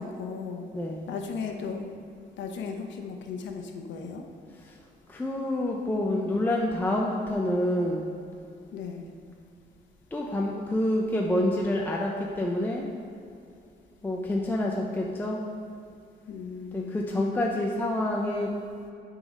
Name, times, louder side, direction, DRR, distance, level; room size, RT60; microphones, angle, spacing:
voice 1, 0.0-0.7 1.1-1.9 2.4-4.2 8.7-9.1 16.3-17.0, left 5 dB, 85° left, 4 dB, 0.9 m, -36 dB
voice 2, 0.7-1.0 4.6-4.8 5.1-8.1 10.1-12.9 14.0-15.4 16.7-18.5, left 1 dB, 10° left, -1 dB, 0.4 m, -27 dB
8.9 x 3.9 x 5.3 m, 2.5 s
cardioid pair, 170°, 19 cm